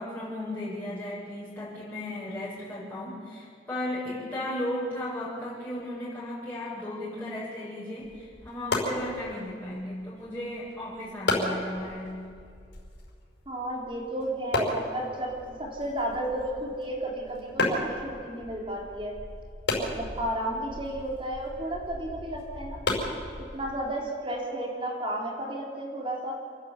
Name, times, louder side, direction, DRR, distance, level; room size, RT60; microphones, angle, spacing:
voice 1, 0.0-12.2, left 1 dB, 10° left, -10 dB, 6.8 m, -35 dB
sound 1, 8.0-23.9, left 2 dB, 70° left, 5.4 m, -34 dB
voice 2, 13.5-15.3 15.6-19.1 19.8-23.0 23.5-26.3, right 1 dB, 30° right, -1 dB, 3.8 m, -33 dB
29.0 x 11.0 x 8.4 m, 2.3 s
head